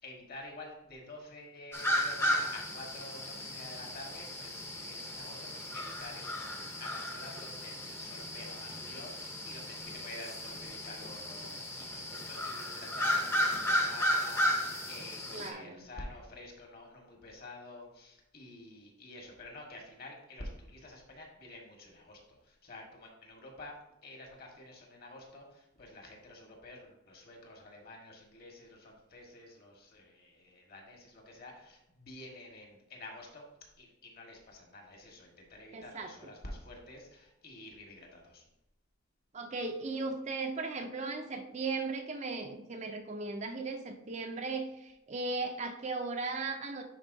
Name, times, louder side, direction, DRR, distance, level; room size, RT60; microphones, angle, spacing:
voice 1, 0.0-23.8 24.0-33.4 33.8-38.4, left 2 dB, 45° left, 1 dB, 1.4 m, -49 dB
sound 1, 1.7-15.5, equal, 10° left, 0.7 m, -34 dB
voice 2, 15.3-15.8 35.7-36.1 39.3-46.8, right 3 dB, 35° right, 5 dB, 0.5 m, -37 dB
9.8 x 4.2 x 2.7 m, 0.88 s
head